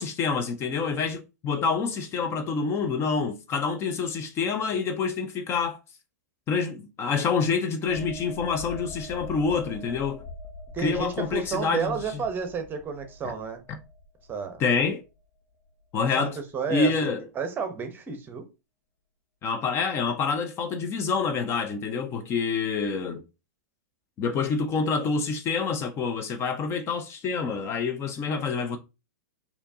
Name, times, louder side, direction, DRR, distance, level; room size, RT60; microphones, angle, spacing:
voice 1, 0.0-5.8 6.5-10.2 10.8-12.0 13.7-13.8 14.6-15.0 15.9-16.4 16.7-17.2 19.4-23.2 24.2-28.8, left 5 dB, 30° left, 0.5 m, -27 dB
sound 1, 7.9-15.3 15.7-15.9, left 3 dB, 60° left, 0.9 m, -43 dB
voice 2, 10.7-13.6 14.3-14.6 16.2-16.9 17.3-18.4, right 6 dB, 20° right, 0.8 m, -31 dB
4.3 x 2.8 x 2.7 m
hypercardioid pair, 110°, 9 cm